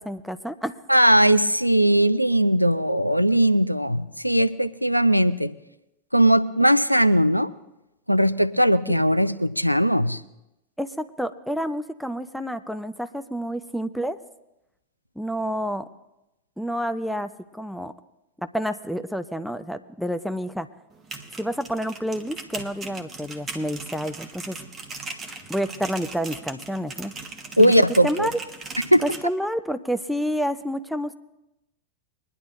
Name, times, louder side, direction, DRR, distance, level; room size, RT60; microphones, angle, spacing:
voice 1, 0.0-0.8 8.9-9.0 10.8-14.2 15.2-15.9 16.6-17.9 18.4-20.7 21.4-24.6 25.5-27.1 27.6-27.7 28.0-28.4 29.0-31.1, equal, ahead, 9 dB, 0.6 m, -29 dB
voice 2, 0.9-5.5 6.1-7.5 8.1-10.2 27.6-28.3 28.9-29.0, equal, 90° right, 15 dB, 0.4 m, -19 dB
sound 1, 20.9-29.2, right 3 dB, 20° right, 1.2 m, -39 dB
22.5 x 11.0 x 2.5 m, 0.91 s
figure-of-eight pair, 90°, 0 cm